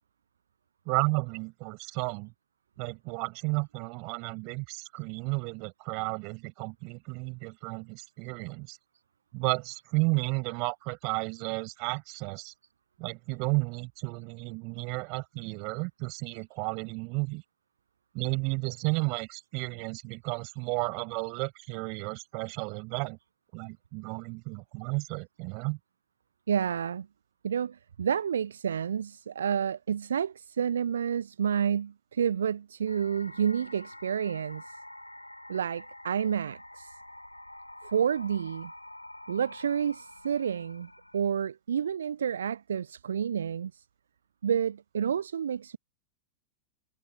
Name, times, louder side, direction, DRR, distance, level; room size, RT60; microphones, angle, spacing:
voice 1, 0.9-2.3 2.8-8.8 9.3-12.5 13.0-17.4 18.1-23.2 23.5-25.8, right 32 dB, 45° right, 7.1 m, -33 dB
voice 2, 26.5-27.1 27.4-34.8 35.5-36.9 37.8-38.7 39.3-43.8 44.4-45.8, right 8 dB, 65° right, 0.6 m, -30 dB
sound 1, 32.9-41.3, left 1 dB, 85° left, 5.6 m, -47 dB
figure-of-eight pair, 90°, 0 cm